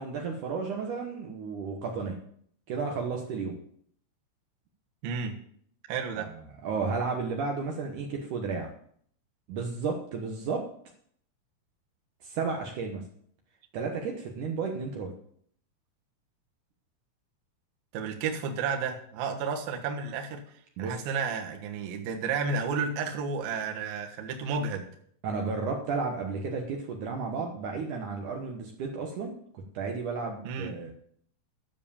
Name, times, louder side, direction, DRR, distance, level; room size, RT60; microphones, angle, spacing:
voice 1, 0.0-2.2 2.7-3.6 6.2-6.4 6.6-8.7 9.5-10.7 12.2-13.1 13.7-15.1 20.8-21.0 25.2-30.9, right 4 dB, 90° right, 1 dB, 1.7 m, -33 dB
voice 2, 5.0-5.4 5.9-6.3 17.9-20.4 20.8-24.9 30.4-30.7, right 5 dB, 65° right, 2 dB, 2.7 m, -32 dB
12.5 x 7.5 x 7.1 m, 0.63 s
omnidirectional pair, 5.6 m